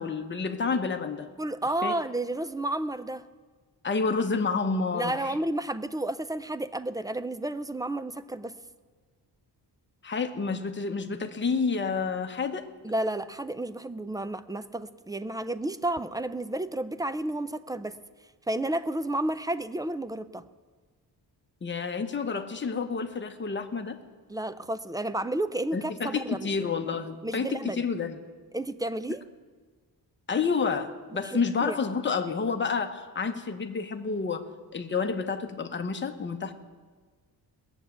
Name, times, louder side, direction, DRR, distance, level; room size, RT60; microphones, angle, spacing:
voice 1, 0.0-1.3 1.8-2.0 3.8-5.2 10.0-12.7 21.6-24.0 25.7-28.2 30.3-36.5, left 5 dB, 25° left, 5 dB, 0.9 m, -29 dB
voice 2, 1.4-3.2 4.9-8.6 12.8-18.0 18.5-20.5 24.3-26.5 27.2-27.8 28.5-29.2 31.2-31.8, right 1 dB, 10° right, 13 dB, 0.3 m, -31 dB
19.0 x 7.2 x 9.1 m, 1.5 s
wide cardioid pair, 160°, 41 cm